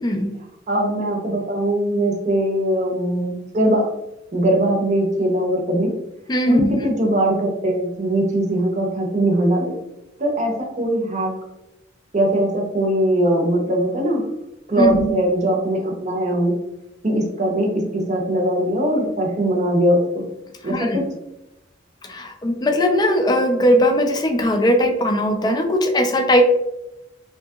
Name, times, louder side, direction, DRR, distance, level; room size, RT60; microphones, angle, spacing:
voice 1, 0.7-3.9 4.3-5.9 6.5-9.7 10.2-11.3 12.1-14.2 14.7-16.6 17.0-20.3 20.6-21.0, right 1 dB, 40° right, 0 dB, 0.7 m, -21 dB
voice 2, 6.3-6.7 14.8-15.1 20.6-21.0 22.1-26.4, equal, 20° left, 4 dB, 0.4 m, -19 dB
2.8 x 2.7 x 2.3 m, 0.90 s
head